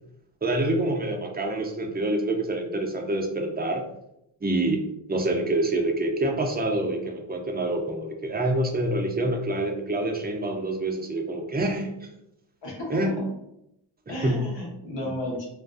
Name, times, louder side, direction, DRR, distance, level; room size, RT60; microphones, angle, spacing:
voice 1, 0.4-3.9 4.4-4.8 5.1-12.1 12.9-13.1 14.1-14.4 15.0-15.1, right 2 dB, 20° right, 2 dB, 0.4 m, -26 dB
voice 2, 12.6-13.3 14.1-15.5, left 1 dB, 65° left, -2 dB, 0.9 m, -33 dB
2.5 x 2.2 x 2.4 m, 0.80 s
wide cardioid pair, 75°, 49 cm